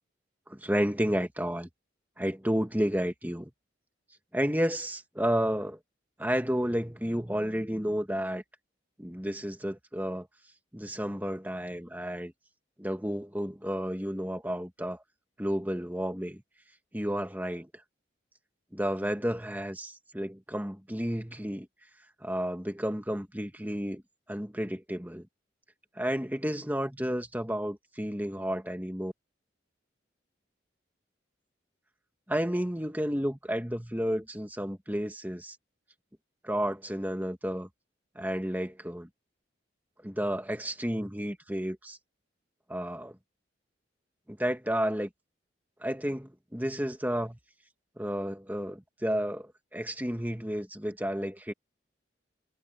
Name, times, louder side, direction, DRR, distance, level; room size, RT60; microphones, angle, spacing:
voice 1, 0.5-1.7 2.2-3.5 4.3-5.8 6.2-8.4 9.0-10.3 10.7-12.3 12.8-15.0 15.4-16.4 16.9-17.7 18.7-21.7 22.2-24.0 24.3-25.3 26.0-29.1 32.3-35.6 36.4-37.7 38.2-39.1 40.0-42.0 42.7-43.2 44.3-45.1 45.8-47.4 48.0-51.5, equal, 10° right, 2.0 m, -31 dB
head